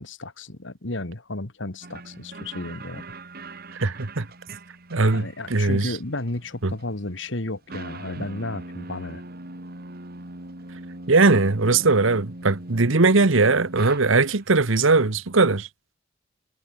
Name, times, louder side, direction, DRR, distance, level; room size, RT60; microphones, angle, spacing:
voice 1, 0.0-3.0 5.1-9.2, left 2 dB, 65° left, 2.1 m, -33 dB
sound 1, 1.8-14.6, right 2 dB, 50° right, 2.6 m, -41 dB
voice 2, 3.7-4.3 4.9-6.0 6.6-6.7 11.1-15.7, right 3 dB, 75° right, 1.2 m, -20 dB
head